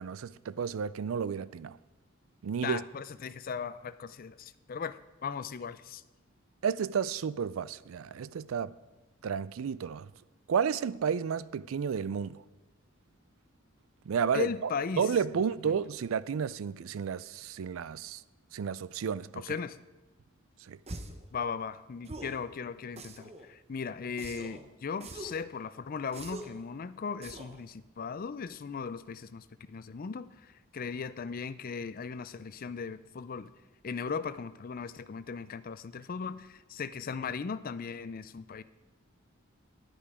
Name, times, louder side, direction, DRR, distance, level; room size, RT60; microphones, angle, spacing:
voice 1, 0.0-1.8 2.4-2.8 6.6-8.7 9.2-10.1 10.5-12.4 14.1-14.7 15.0-18.2 18.5-19.4 20.7-20.8, right 7 dB, 80° right, 0.4 m, -32 dB
voice 2, 2.6-6.0 14.3-15.1 15.6-15.8 19.3-19.8 21.3-33.5 33.8-38.6, left 5 dB, 45° left, 0.4 m, -37 dB
sound 1, 20.9-21.2 22.0-22.4 23.0-23.5 24.2-24.6 25.0-25.4 26.1-26.6 27.2-27.6, right 2 dB, 30° right, 0.8 m, -43 dB
10.5 x 10.0 x 4.9 m
head